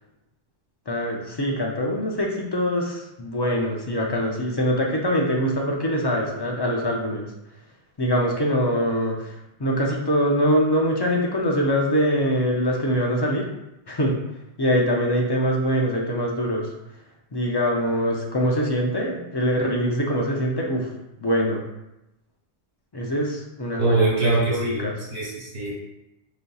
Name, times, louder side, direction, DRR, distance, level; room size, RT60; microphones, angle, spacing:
voice 1, 0.9-7.3 8.0-13.5 13.9-14.2 14.6-16.7 17.3-20.9 21.2-21.6 22.9-25.0, equal, 45° left, -1 dB, 0.3 m, -23 dB
voice 2, 23.8-25.7, right 3 dB, 60° right, -6 dB, 1.5 m, -23 dB
4.9 x 2.7 x 2.3 m, 0.92 s
omnidirectional pair, 1.1 m